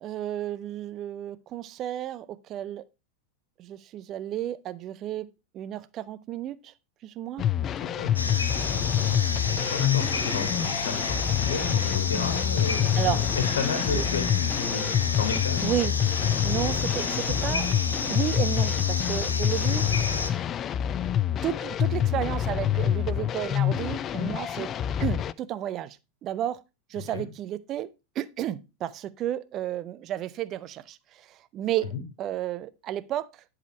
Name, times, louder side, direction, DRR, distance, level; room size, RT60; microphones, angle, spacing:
voice 1, 0.0-2.8 3.6-5.3 5.5-6.7 7.0-7.5 12.9-13.2 13.9-14.0 15.6-16.0 16.4-19.9 20.3-20.4 21.4-24.7 25.0-26.6 26.9-27.9 28.1-31.9 32.2-33.4, right 12 dB, 35° right, 0.6 m, -32 dB
sound 1, 7.4-25.3, left 10 dB, 30° left, 0.3 m, -27 dB
voice 2, 7.8-8.2 9.5-15.7 27.0-27.2 31.9-32.0, left 6 dB, 60° left, 2.1 m, -32 dB
sound 2, 8.2-20.3, left 3 dB, 75° left, 1.1 m, -31 dB
10.5 x 5.0 x 4.5 m
figure-of-eight pair, 90°, 0 cm